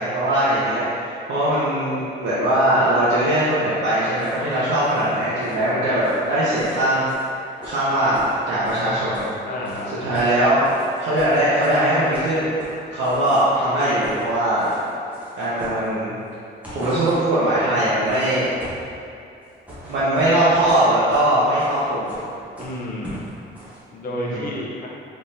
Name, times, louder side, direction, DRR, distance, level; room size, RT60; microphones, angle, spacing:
voice 1, 0.0-7.1 7.6-9.3 10.0-10.6 11.0-12.5 12.9-14.8 15.4-16.1 16.7-18.5 19.8-22.1 24.2-24.5, right 1 dB, 75° right, -11 dB, 0.8 m, -20 dB
sound 1, 4.2-9.4 9.6-10.3 10.6-13.6 13.9-14.3 14.5-16.2 16.5-17.3 17.8-18.9 19.4-23.8, equal, 5° right, 1.0 m, -39 dB
voice 2, 9.5-10.1 22.6-23.3 23.9-24.9, left 1 dB, 50° left, -3 dB, 0.7 m, -31 dB
3.6 x 3.1 x 2.7 m, 2.5 s
cardioid pair, 140°, 19 cm